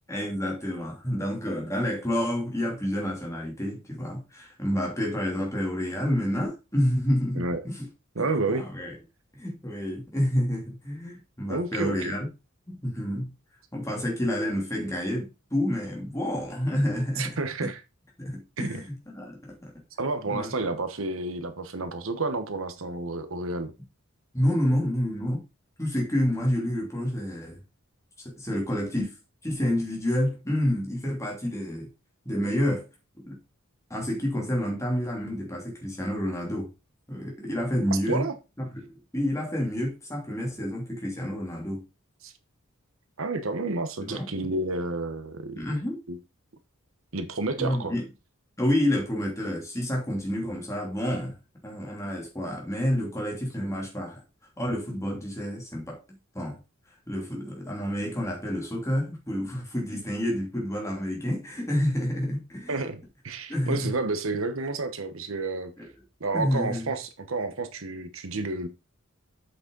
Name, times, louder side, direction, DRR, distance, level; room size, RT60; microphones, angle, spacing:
voice 1, 0.1-7.9 8.5-9.0 9.3-12.3 12.8-13.3 13.7-17.7 18.2-19.7 20.3-20.5 24.3-25.4 25.8-27.6 28.2-29.1 29.4-31.9 32.2-32.9 33.3-33.4 33.9-36.7 37.1-38.3 38.6-41.8 44.0-44.5 45.5-46.0 47.6-48.0 48.6-51.3 51.6-54.2 54.6-56.0 56.3-56.6 57.1-62.8 63.5-63.9 65.8-65.9 66.3-66.9, equal, 15° left, 2.9 m, -29 dB
voice 2, 7.4-7.7 8.2-8.7 11.5-12.1 17.2-17.8 18.6-18.8 20.0-23.7 38.1-38.3 42.2-42.3 43.2-45.6 46.1-46.2 47.1-47.9 62.7-65.7 66.2-68.7, right 3 dB, 70° right, 1.1 m, -30 dB
7.9 x 6.4 x 3.9 m
head